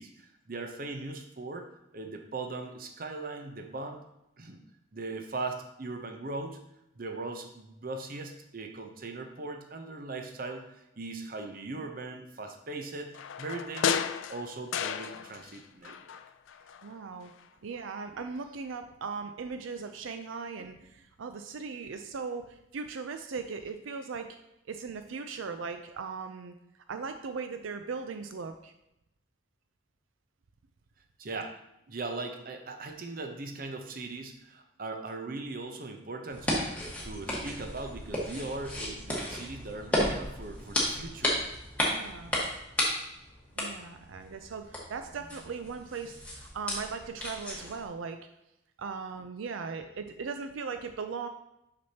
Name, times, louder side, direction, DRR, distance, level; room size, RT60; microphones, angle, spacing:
voice 1, 0.0-4.0 4.4-4.6 4.9-6.6 7.0-14.0 14.3-16.1 31.2-31.6 31.9-41.4, right 3 dB, 45° right, 5 dB, 0.7 m, -39 dB
sound 1, 13.1-15.6 15.8-16.9 17.3-17.4, left 7 dB, 75° left, 0.3 m, -33 dB
voice 2, 16.8-17.3 17.6-24.3 24.7-26.5 26.9-28.7 41.8-42.3 43.6-48.2 48.8-51.3, right 5 dB, 85° right, 8 dB, 0.4 m, -38 dB
sound 2, 36.3-47.9, left 1 dB, 5° left, 1.3 m, -34 dB
6.2 x 6.0 x 2.8 m, 0.86 s
head